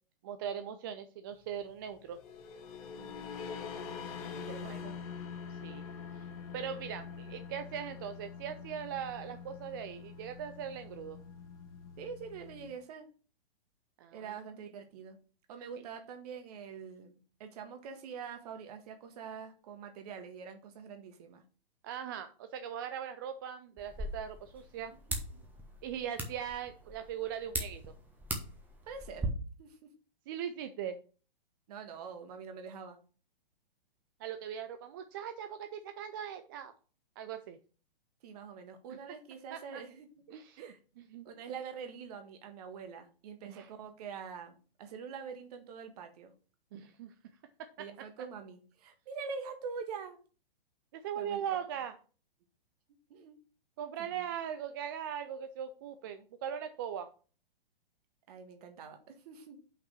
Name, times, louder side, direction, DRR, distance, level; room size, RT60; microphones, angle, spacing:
voice 1, 0.2-2.2 4.6-4.8 5.5-5.8 6.1-6.2 6.5-11.2 14.0-14.4 21.8-24.9 25.8-27.8 30.3-31.0 34.2-36.7 37.2-37.6 38.9-39.0 39.5-39.8 40.3-41.3 43.5-43.7 46.7-47.1 47.6-47.7 50.9-51.9 53.8-57.1, right 9 dB, 25° right, 9 dB, 0.4 m, -40 dB
sound 1, 2.0-12.7, left 6 dB, 35° left, 1.5 m, -45 dB
voice 2, 3.0-3.4 4.4-4.9 12.0-13.1 14.1-15.2 15.5-21.4 25.1-25.4 28.9-29.3 29.6-29.8 31.7-33.0 38.2-40.1 40.6-40.8 41.2-46.3 47.8-50.2 51.1-51.8 53.1-53.4 54.0-54.3 58.3-59.6, right 6 dB, 40° right, 6 dB, 1.6 m, -45 dB
sound 2, 23.8-29.3, right 2 dB, 5° right, 1.3 m, -40 dB
5.8 x 5.4 x 6.2 m, 0.39 s
figure-of-eight pair, 115°, 30 cm